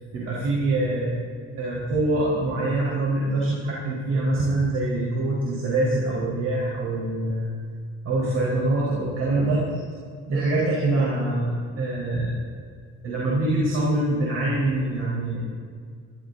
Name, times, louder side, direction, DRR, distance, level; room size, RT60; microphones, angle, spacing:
voice 1, 0.1-1.2 1.6-7.5 8.0-9.8 10.3-11.5 11.8-12.3 13.0-15.4, right 2 dB, 55° right, -6 dB, 4.5 m, -24 dB
23.0 x 14.5 x 2.7 m, 2.1 s
cardioid pair, 130°, 31 cm